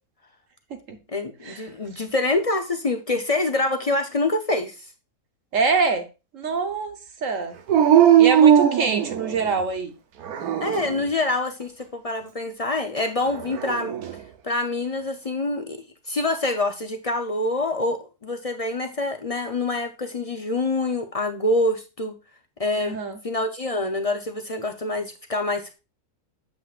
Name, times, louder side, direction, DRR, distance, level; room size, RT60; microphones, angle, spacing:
voice 1, 1.1-4.8 10.6-13.9 14.4-22.1 22.6-23.0 23.2-25.7, left 2 dB, 45° left, 5 dB, 0.4 m, -26 dB
voice 2, 5.5-6.1 6.3-6.9 7.2-7.6 8.2-9.9 22.8-23.2, right 4 dB, 60° right, 6 dB, 1.2 m, -25 dB
Dog, 7.7-9.6 10.2-11.0 13.3-14.2, right 9 dB, 75° right, 1.3 m, -18 dB
8.7 x 7.6 x 2.4 m, 0.29 s
omnidirectional pair, 1.6 m